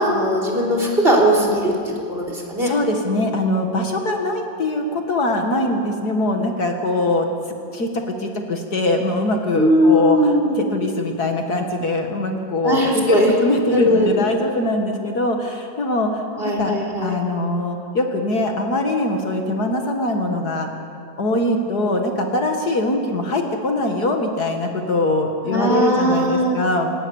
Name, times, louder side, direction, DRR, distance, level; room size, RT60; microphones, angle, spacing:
voice 1, 0.0-2.7 9.6-10.6 12.6-13.3 13.7-14.2 16.4-17.2 25.5-26.6, equal, 30° right, -1 dB, 4.2 m, -18 dB
voice 2, 2.6-7.3 7.7-20.7 21.2-26.9, left 1 dB, 55° left, 3 dB, 2.2 m, -22 dB
28.5 x 17.5 x 7.2 m, 2.5 s
omnidirectional pair, 2.1 m